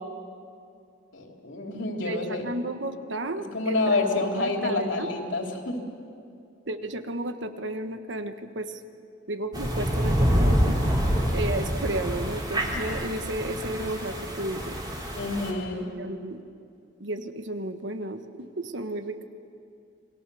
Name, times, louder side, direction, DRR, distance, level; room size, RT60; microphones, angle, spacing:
voice 1, 1.1-2.4 3.5-5.8 15.2-15.8, left 2 dB, 75° left, 1 dB, 3.2 m, -28 dB
voice 2, 2.0-5.1 6.7-8.8 9.3-10.8 11.3-14.8 16.0-16.4 17.0-19.3, right 1 dB, 70° right, 8 dB, 1.4 m, -33 dB
sound 1, 9.5-15.5, equal, 20° right, 3.6 m, -26 dB
29.0 x 21.5 x 7.0 m, 2.5 s
head